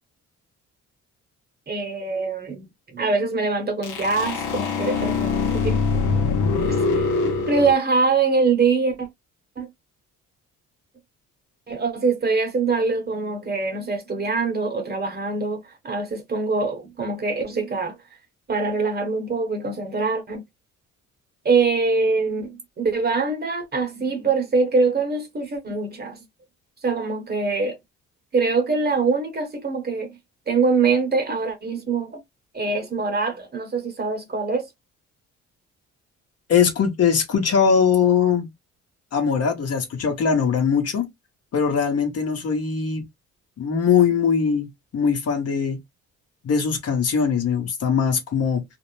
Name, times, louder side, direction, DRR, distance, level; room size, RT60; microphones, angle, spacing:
voice 1, 1.7-2.7 2.9-5.8 7.5-9.1 9.6-9.7 11.7-17.9 18.5-20.4 21.4-26.2 26.8-27.8 28.3-30.1 30.5-32.2 32.5-34.7, right 4 dB, 30° right, 1.0 m, -23 dB
sound 1, 3.8-7.7, left 4 dB, 80° left, 0.8 m, -23 dB
voice 2, 36.5-38.5 39.1-41.1 41.5-43.0 43.6-44.7 44.9-45.8 46.4-48.6, left 6 dB, 55° left, 1.0 m, -21 dB
2.5 x 2.0 x 3.0 m
cardioid pair, 90°, 30 cm